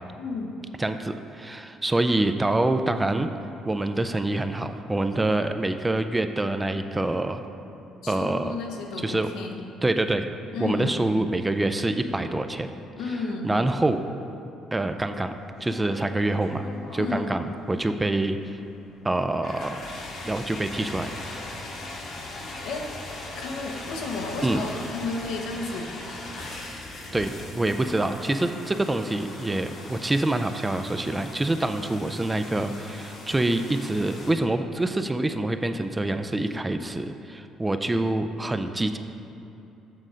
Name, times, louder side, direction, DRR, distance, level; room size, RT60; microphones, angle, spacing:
voice 1, 0.2-0.5 8.0-9.6 10.5-11.0 13.0-13.6 17.0-17.4 22.6-22.9 23.4-25.9, left 3 dB, 85° left, 2 dB, 0.9 m, -32 dB
voice 2, 0.8-3.3 3.7-7.4 8.1-8.6 9.0-9.3 9.8-10.3 10.6-12.7 13.1-13.2 13.4-14.0 14.7-15.3 15.6-16.7 16.9-18.6 19.0-19.9 20.2-21.1 24.4-24.6 27.1-39.0, right 2 dB, 15° right, 8 dB, 0.3 m, -26 dB
sound 1, 15.3-34.3, left 2 dB, 55° left, 1.2 m, -40 dB
7.7 x 3.7 x 6.1 m, 3.0 s
cardioid pair, 125°, 0 cm